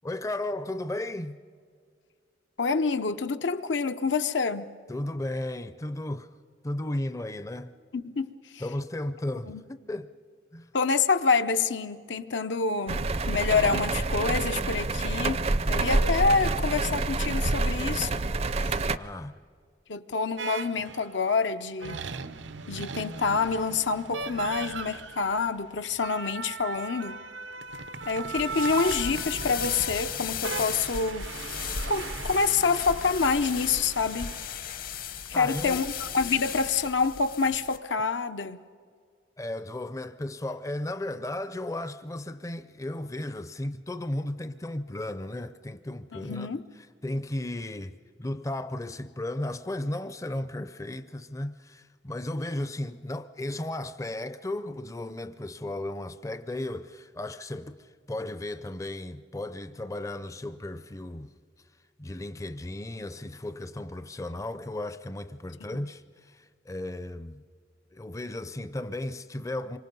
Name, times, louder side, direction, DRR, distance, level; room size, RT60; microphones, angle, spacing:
voice 1, 0.0-1.4 4.9-6.3 6.6-7.7 8.6-10.1 10.5-10.7 18.9-19.3 35.3-35.8 39.4-46.5 47.0-61.3 62.0-67.4 67.9-69.8, left 1 dB, 15° left, 0.5 m, -35 dB
voice 2, 2.6-4.7 7.9-8.6 9.5-9.6 10.7-18.2 18.6-18.8 19.9-22.0 22.7-27.2 28.1-31.3 31.9-34.4 35.3-38.6 46.1-46.6 65.7-65.9, left 4 dB, 80° left, 0.8 m, -27 dB
sound 1, 12.9-19.0, right 2 dB, 35° right, 0.5 m, -27 dB
sound 2, 20.4-21.2 21.8-34.4, right 4 dB, 85° right, 0.8 m, -38 dB
sound 3, 28.3-37.8, left 7 dB, 50° left, 0.9 m, -36 dB
27.0 x 24.5 x 5.4 m
head